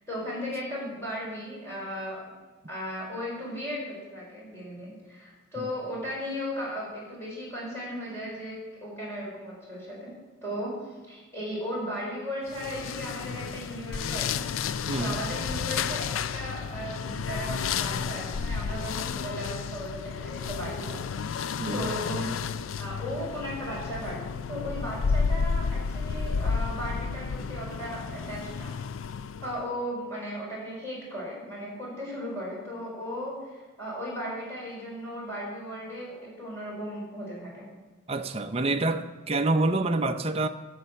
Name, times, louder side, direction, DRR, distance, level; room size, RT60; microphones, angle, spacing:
voice 1, 0.1-2.2 2.7-10.1 10.4-14.5 15.0-21.4 21.7-22.5 22.8-28.8 29.4-37.7, equal, 15° left, -6 dB, 4.7 m, -36 dB
sound 1, 12.5-29.6, left 6 dB, 70° left, 0.4 m, -31 dB
voice 2, 14.9-15.2 21.6-21.9 38.1-40.5, right 2 dB, 30° right, 7 dB, 0.5 m, -27 dB
11.0 x 7.3 x 6.9 m, 1.3 s
head